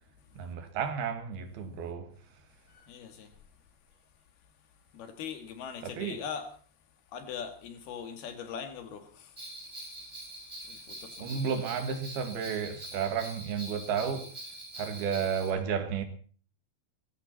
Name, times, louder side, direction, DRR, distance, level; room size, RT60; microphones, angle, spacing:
voice 1, 0.3-2.1 5.8-6.2 11.2-14.3 14.8-16.0, right 7 dB, 85° right, 3.9 m, -32 dB
voice 2, 2.7-3.3 4.9-6.5 7.1-9.4 10.7-11.7, left 7 dB, 90° left, 4.0 m, -41 dB
Bell, 9.4-15.5, right 1 dB, 5° right, 7.2 m, -44 dB
20.0 x 16.0 x 4.2 m
omnidirectional pair, 4.3 m